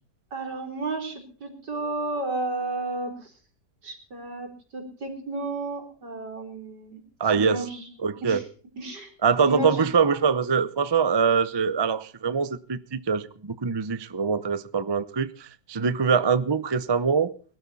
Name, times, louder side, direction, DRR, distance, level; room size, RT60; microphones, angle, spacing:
voice 1, 0.3-3.3 3.8-7.0 7.4-7.8 8.2-8.4 8.8-9.1 9.5-9.8, right 2 dB, 80° right, 4.4 m, -32 dB
voice 2, 7.2-7.7 8.0-8.4 9.2-17.3, right 6 dB, 40° right, 0.3 m, -24 dB
22.0 x 12.5 x 4.1 m
omnidirectional pair, 1.8 m